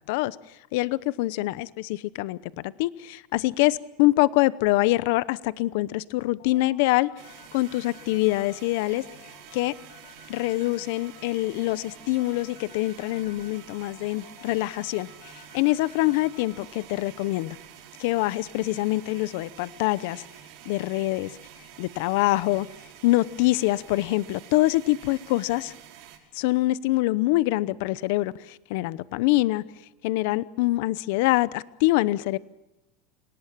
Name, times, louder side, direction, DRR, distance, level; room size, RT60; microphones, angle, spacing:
voice 1, 0.7-7.1 7.5-9.0 9.5-9.7 10.3-15.1 15.5-17.6 18.0-20.2 20.7-21.3 21.8-22.7 23.0-25.7 26.3-29.6 30.0-32.4, left 18 dB, 65° left, 18 dB, 0.8 m, -25 dB
sound 1, 6.4-17.0, left 10 dB, 85° left, 7.2 m, -53 dB
Toilet flush, 7.2-26.2, right 10 dB, 60° right, 5.5 m, -48 dB
28.0 x 18.5 x 7.4 m, 0.94 s
supercardioid pair, 150°, 0 cm